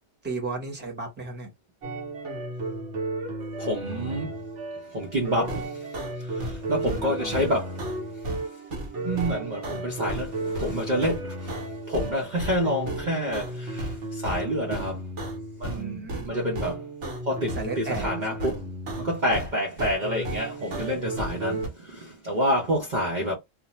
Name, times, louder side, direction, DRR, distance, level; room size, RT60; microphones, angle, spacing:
voice 1, 0.2-1.5 6.8-7.4 15.8-16.3 17.5-18.5, right 3 dB, 10° right, 0.9 m, -34 dB
sound 1, 1.8-15.8 16.1-19.5 19.8-21.7, right 1 dB, 75° right, 1.1 m, -33 dB
voice 2, 3.6-4.3 4.9-5.9 6.2-7.9 9.0-11.6 11.9-15.0 15.6-16.0 16.2-16.8 17.2-18.6 19.0-23.4, equal, 45° right, 0.7 m, -28 dB
2.5 x 2.1 x 2.9 m
omnidirectional pair, 1.2 m